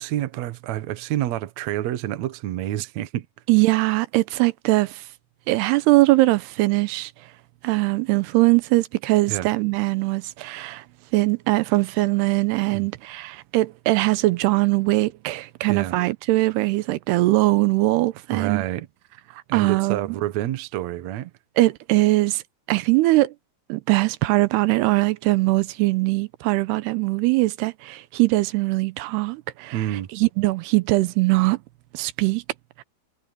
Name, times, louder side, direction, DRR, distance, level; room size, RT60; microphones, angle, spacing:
voice 1, 0.0-3.3 9.3-9.5 12.7-12.9 15.7-16.0 18.3-18.9 19.5-21.3 29.7-30.1, right 13 dB, 70° right, 1.7 m, -28 dB
voice 2, 3.5-5.0 5.5-7.1 7.6-10.8 11.1-18.6 19.5-20.0 21.6-22.4 22.7-23.3 23.7-29.8 30.1-31.6 31.9-32.4 32.8-32.9, right 20 dB, 90° right, 2.7 m, -21 dB
omnidirectional pair, 4.8 m